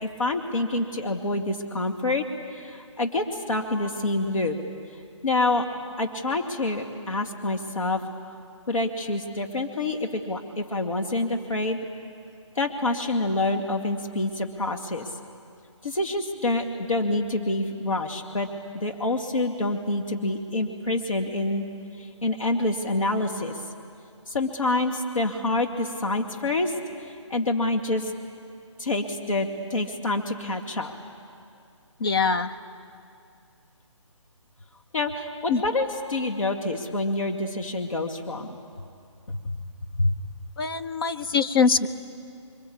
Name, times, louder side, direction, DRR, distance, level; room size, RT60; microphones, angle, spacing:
voice 1, 0.0-2.3 2.5-4.6 5.2-5.7 6.0-8.0 8.7-11.8 12.6-15.1 15.8-18.5 18.7-21.7 22.0-23.6 24.3-26.7 27.1-28.1 28.8-30.9 34.9-38.6 39.3-39.6 40.0-40.1, left 2 dB, 85° left, 2 dB, 2.3 m, -27 dB
voice 2, 32.0-32.5 35.5-35.6 40.6-41.9, left 5 dB, 45° left, 8 dB, 1.1 m, -23 dB
26.5 x 24.0 x 8.7 m, 2.4 s
hypercardioid pair, 160°, 17 cm